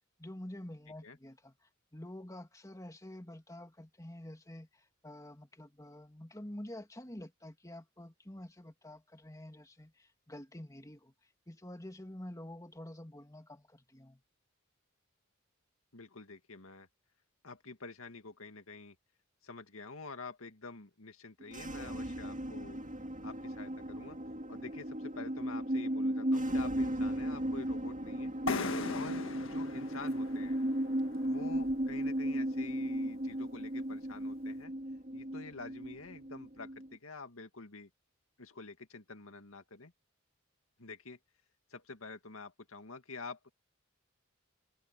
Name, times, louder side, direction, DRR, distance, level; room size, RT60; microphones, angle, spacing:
voice 1, 0.2-11.1 11.5-14.2, left 1 dB, 15° left, 2.3 m, -48 dB
voice 2, 15.9-16.9 17.4-19.0 19.4-22.8 23.2-24.2 24.5-28.3 28.9-30.6 31.2-34.7 35.1-37.9 38.4-39.9 40.8-41.2 41.7-43.4, left 3 dB, 85° left, 2.2 m, -48 dB
sound 1, 21.4-36.9, right 1 dB, 40° right, 2.3 m, -36 dB
sound 2, 28.5-32.1, left 2 dB, 65° left, 1.6 m, -39 dB
head